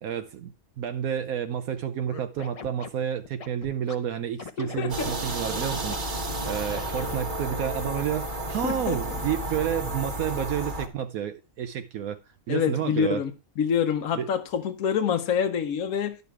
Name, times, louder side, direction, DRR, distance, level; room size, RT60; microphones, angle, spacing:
voice 1, 0.0-12.2 12.5-13.2 14.1-14.3, right 9 dB, 75° right, 1.1 m, -30 dB
Scratching (performance technique), 2.0-4.0 4.4-6.0 6.7-7.3, left 5 dB, 40° left, 0.5 m, -41 dB
voice 2, 4.6-5.4 8.6-9.0 12.5-13.3 13.6-16.2, left 7 dB, 70° left, 1.2 m, -26 dB
sound 1, 4.9-10.9, right 1 dB, 35° right, 1.3 m, -32 dB
10.5 x 6.8 x 4.6 m
omnidirectional pair, 1.5 m